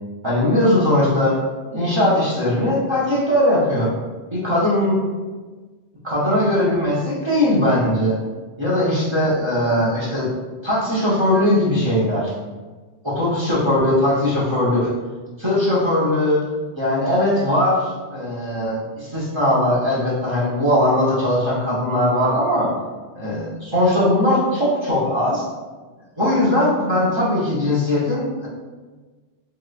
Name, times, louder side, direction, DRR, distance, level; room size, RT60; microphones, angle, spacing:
voice 1, 0.2-1.4 1.7-3.9 4.3-5.0 6.0-8.2 8.6-10.3 10.6-12.3 13.0-14.9 15.4-16.4 16.7-22.7 23.2-25.4 26.2-28.5, left 1 dB, 30° right, -8 dB, 0.6 m, -19 dB
3.0 x 3.0 x 2.3 m, 1.3 s
omnidirectional pair, 1.1 m